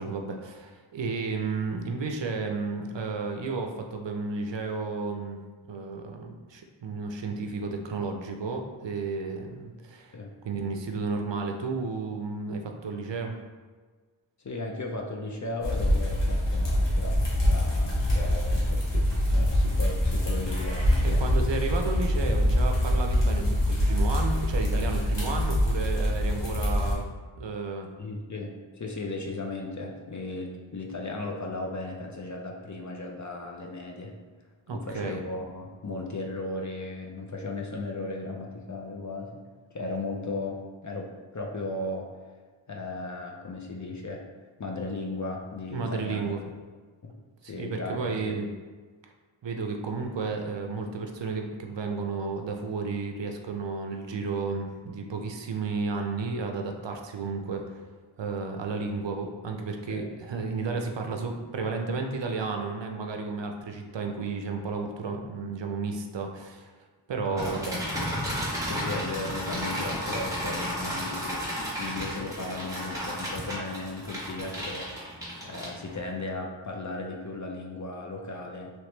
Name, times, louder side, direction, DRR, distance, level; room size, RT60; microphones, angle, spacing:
voice 1, 0.0-5.4 5.7-10.2 10.4-13.4 21.0-27.1 27.4-27.9 34.7-35.2 45.7-46.4 47.4-48.5 49.4-57.8 58.2-66.7 67.1-67.8, right 4 dB, 65° right, 3 dB, 0.5 m, -32 dB
voice 2, 14.4-21.2 28.0-34.1 34.7-39.4 39.7-42.1 42.7-44.2 44.6-46.2 47.0-47.1 47.5-48.4 59.9-60.1 67.2-67.6 68.6-78.7, left 2 dB, 40° left, 1 dB, 0.5 m, -36 dB
sound 1, 15.6-26.9, left 1 dB, 60° left, 1.1 m, -25 dB
Meow, 20.4-21.3, equal, 15° left, 1.1 m, -44 dB
sound 2, 67.4-76.1, equal, 5° right, 1.3 m, -33 dB
3.1 x 3.0 x 3.2 m, 1.4 s
wide cardioid pair, 45°, 48 cm